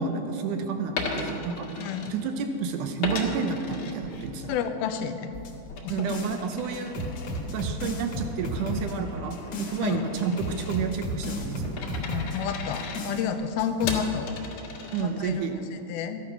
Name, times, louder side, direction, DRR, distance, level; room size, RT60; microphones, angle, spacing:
voice 1, 0.0-4.5 5.9-7.0 7.4-11.9 14.9-15.6, right 5 dB, 75° right, 6 dB, 2.0 m, -30 dB
Coin (dropping), 0.9-2.6 3.0-4.6 5.0-15.4, left 4 dB, 70° left, 3.2 m, -38 dB
voice 2, 1.8-2.1 4.5-5.3 5.8-6.1 9.8-10.0 12.1-14.3 15.0-15.5 15.7-16.2, left 8 dB, 85° left, 8 dB, 2.6 m, -30 dB
sound 1, 5.3-6.4 6.7-9.8 10.2-12.4 12.7-13.2 13.6-14.0, left 1 dB, 50° left, 2.4 m, -33 dB
14.0 x 11.0 x 5.9 m, 2.7 s
omnidirectional pair, 4.3 m